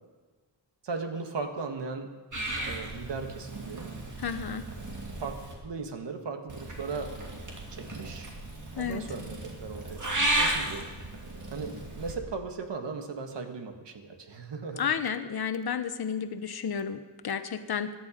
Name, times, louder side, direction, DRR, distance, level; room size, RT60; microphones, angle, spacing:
voice 1, 0.8-2.1 2.6-3.9 5.2-7.1 7.7-8.3 8.7-10.9 11.5-14.9, right 4 dB, 75° right, 5 dB, 1.7 m, -37 dB
Purr / Meow, 2.3-5.5 6.5-12.1, right 1 dB, 45° right, 2.8 m, -34 dB
voice 2, 4.2-4.7 8.8-9.1 14.8-17.9, left 7 dB, 60° left, 10 dB, 1.0 m, -32 dB
17.0 x 12.0 x 5.1 m, 1.4 s
wide cardioid pair, 120°, 43 cm